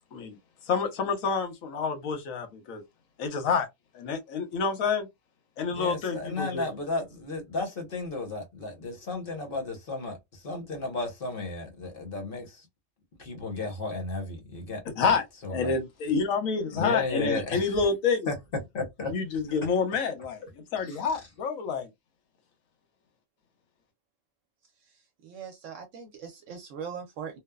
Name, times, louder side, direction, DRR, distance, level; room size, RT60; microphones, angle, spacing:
voice 1, 0.7-2.8 3.2-3.7 3.9-5.1 5.6-6.7 15.0-15.2 15.5-18.3 19.1-20.4 20.7-21.9, left 5 dB, 85° left, 1.2 m, -28 dB
voice 2, 5.7-12.7 13.2-15.1 15.4-15.7 16.7-17.7 18.3-18.4 18.7-19.1 19.5-19.6 20.8-21.1, left 3 dB, 45° left, 1.0 m, -34 dB
voice 3, 25.2-27.4, right 7 dB, 70° right, 0.9 m, -40 dB
3.0 x 2.0 x 2.2 m
omnidirectional pair, 1.4 m